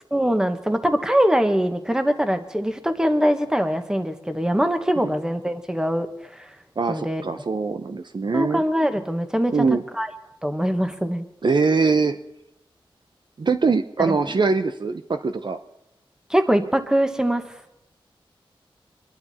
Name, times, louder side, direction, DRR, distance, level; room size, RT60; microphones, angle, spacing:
voice 1, 0.1-6.5 6.9-7.2 8.3-9.5 10.0-10.1 10.4-11.2 14.1-14.2 16.3-17.4, equal, 5° right, 8 dB, 1.4 m, -22 dB
voice 2, 6.8-8.6 9.5-9.8 11.4-12.2 13.4-15.6, right 4 dB, 55° right, 9 dB, 0.8 m, -22 dB
25.0 x 11.5 x 4.3 m, 0.86 s
wide cardioid pair, 75°, 9 cm